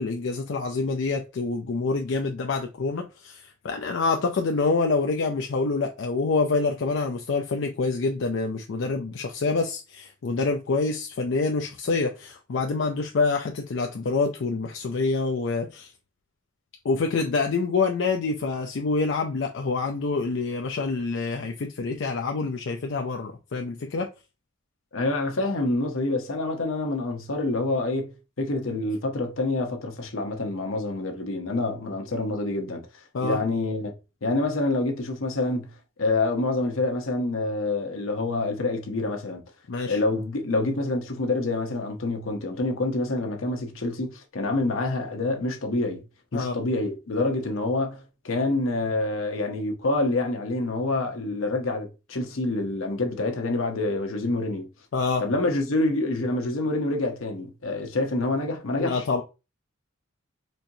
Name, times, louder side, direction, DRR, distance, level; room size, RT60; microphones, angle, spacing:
voice 1, 0.0-15.9 16.8-24.1 33.1-33.4 39.7-40.0 46.3-46.5 54.9-55.3 58.8-59.2, left 4 dB, 65° left, 0.4 m, -26 dB
voice 2, 24.9-32.9 33.2-33.9 34.2-35.7 36.0-39.4 39.9-46.0 46.3-54.7 55.2-59.0, left 2 dB, 80° left, 0.9 m, -27 dB
4.4 x 2.6 x 2.7 m
head